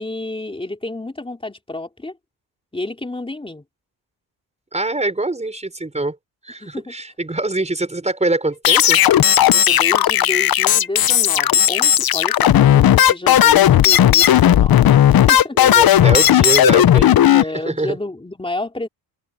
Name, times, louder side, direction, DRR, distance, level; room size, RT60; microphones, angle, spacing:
voice 1, 0.0-2.2 2.7-3.6 6.6-6.9 9.5-14.8 15.1-15.8 17.3-18.9, left 2 dB, 10° left, 3.2 m, -30 dB
voice 2, 4.7-6.2 6.4-9.0 15.5-17.4 17.7-18.0, right 2 dB, 15° right, 5.4 m, -23 dB
sound 1, 8.6-17.4, left 11 dB, 50° left, 0.8 m, -13 dB
open air
cardioid pair, 105°, 48 cm